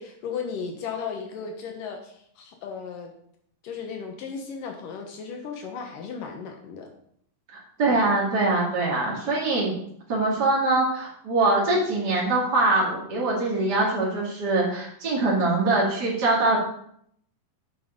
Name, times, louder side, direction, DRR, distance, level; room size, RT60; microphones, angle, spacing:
voice 1, 0.0-3.1 3.6-6.9, left 6 dB, 75° left, 3 dB, 2.7 m, -35 dB
voice 2, 7.5-9.7 10.1-16.6, right 2 dB, 30° right, -5 dB, 2.6 m, -23 dB
9.3 x 7.8 x 5.2 m, 0.68 s
omnidirectional pair, 4.0 m